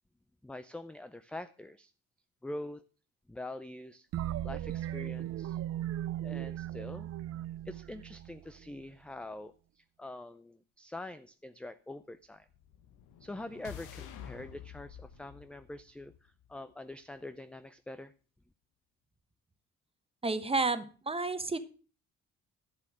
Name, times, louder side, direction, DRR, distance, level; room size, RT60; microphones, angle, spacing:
voice 1, 0.4-1.9 2.4-2.8 3.3-4.1 4.4-5.6 6.2-7.1 7.7-12.5 13.2-18.1, left 1 dB, 5° left, 12 dB, 0.4 m, -45 dB
sound 1, 4.1-8.8, right 12 dB, 55° right, 0.5 m, -37 dB
sound 2, 12.5-16.7, left 9 dB, 85° left, 1.3 m, -49 dB
voice 2, 20.2-21.6, right 3 dB, 20° right, 12 dB, 1.1 m, -31 dB
11.0 x 6.9 x 6.1 m, 0.37 s
cardioid pair, 90°, 30 cm